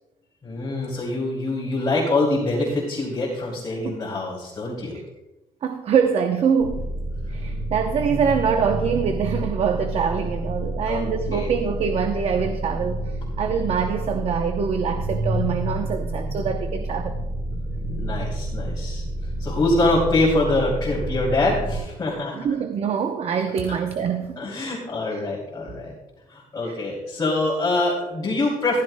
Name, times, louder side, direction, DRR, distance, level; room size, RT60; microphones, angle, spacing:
voice 1, 0.4-5.0 10.9-11.5 17.9-19.0 19.4-22.5 24.4-25.9 26.3-28.8, left 2 dB, 25° left, -6 dB, 2.9 m, -24 dB
voice 2, 5.6-6.9 7.3-17.2 22.3-24.4 26.7-26.8, right 6 dB, 45° right, 6 dB, 0.7 m, -24 dB
sound 1, 6.6-21.8, right 1 dB, 90° right, 3.2 m, -29 dB
15.0 x 13.5 x 2.2 m, 0.98 s
cardioid pair, 145°, 14 cm